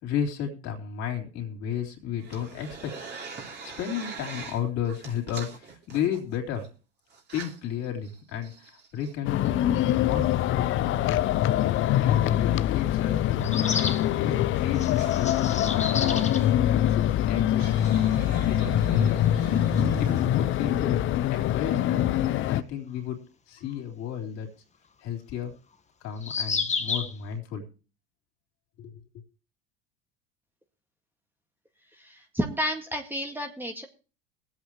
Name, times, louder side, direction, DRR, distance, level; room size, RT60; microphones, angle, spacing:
voice 1, 0.0-3.0 3.6-6.7 7.3-8.5 8.9-9.6 9.9-10.2 10.5-11.3 11.8-13.7 14.2-16.3 16.7-17.8 18.4-19.2 20.0-22.0 22.5-23.2 23.5-24.5 25.0-25.6 26.0-27.6 28.8-29.0, left 8 dB, 60° left, 2 dB, 3.5 m, -33 dB
sound 1, 2.2-4.6 4.9-6.7 7.2-7.5 8.1-8.2 8.4-9.1 11.2-11.4 13.2-13.3 13.6-13.7 13.9-14.0 14.3-15.2 16.2-16.5 17.4-20.8, right 4 dB, 35° right, 3.2 m, -39 dB
sound 2, 9.2-22.6, left 12 dB, 45° left, 0.6 m, -24 dB
sound 3, 11.9-12.0 13.4-14.1 14.8-16.5 17.7-17.8 17.9-18.0 20.5-20.6 23.7-23.8 26.2-27.2, left 5 dB, 25° left, 1.5 m, -31 dB
voice 2, 31.9-33.9, equal, 5° right, 3 dB, 1.9 m, -31 dB
22.5 x 8.2 x 3.1 m, 0.35 s
hypercardioid pair, 80°, 30 cm